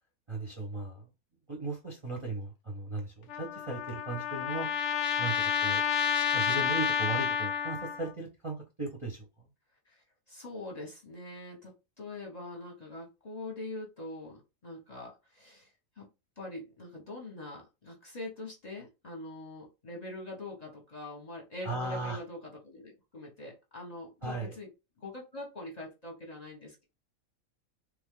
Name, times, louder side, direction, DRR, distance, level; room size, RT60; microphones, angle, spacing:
voice 1, 0.3-1.0 1.5-4.7 5.2-5.8 6.3-9.2 21.6-22.2 24.2-24.5, right 3 dB, 35° right, 0.5 m, -37 dB
Trumpet, 3.3-8.1, left 7 dB, 65° left, 0.8 m, -30 dB
voice 2, 9.9-15.7 16.0-16.1 16.4-24.7 25.0-26.8, left 2 dB, 35° left, 0.9 m, -43 dB
3.1 x 2.4 x 3.6 m
omnidirectional pair, 1.5 m